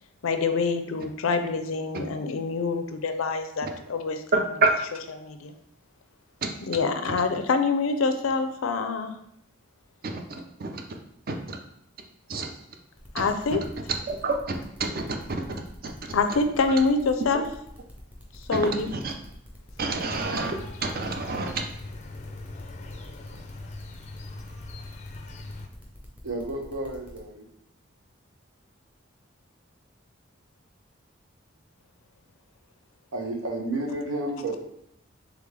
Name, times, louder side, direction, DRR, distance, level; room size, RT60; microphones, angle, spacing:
voice 1, 0.2-4.2 5.2-5.5 6.7-9.1 13.1-13.6 16.1-17.4 18.5-18.9, left 4 dB, 90° left, 8 dB, 0.5 m, -25 dB
voice 2, 4.3-4.7 6.4-6.5 10.0-10.8 11.3-11.6 12.3-12.5 13.2-13.3 14.1-15.0 15.3-15.9 18.5-19.1 19.8-20.5 20.8-21.6, right 3 dB, 45° right, 4 dB, 0.5 m, -28 dB
sound 1, 13.0-27.2, left 1 dB, 5° right, 0.7 m, -49 dB
sound 2, 20.1-25.7, left 2 dB, 35° left, 0.4 m, -41 dB
voice 3, 26.2-27.5 33.1-34.6, right 2 dB, 90° right, 1 dB, 0.8 m, -31 dB
3.7 x 3.4 x 3.3 m, 0.74 s
head